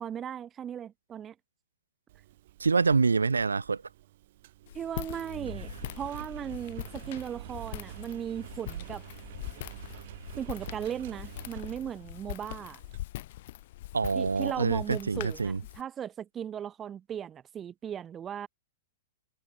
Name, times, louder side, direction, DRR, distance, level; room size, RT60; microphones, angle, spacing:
voice 1, 0.0-1.3 4.7-9.0 10.4-12.8 14.2-18.5, right 9 dB, 25° right, 1.9 m, -37 dB
Engine, 2.1-13.0, right 15 dB, 55° right, 4.2 m, -47 dB
voice 2, 2.6-3.8 13.9-15.6, right 4 dB, 85° right, 0.5 m, -26 dB
Walk footsteps, 4.7-15.8, left 16 dB, 55° left, 1.6 m, -42 dB
figure-of-eight pair, 110°, 0 cm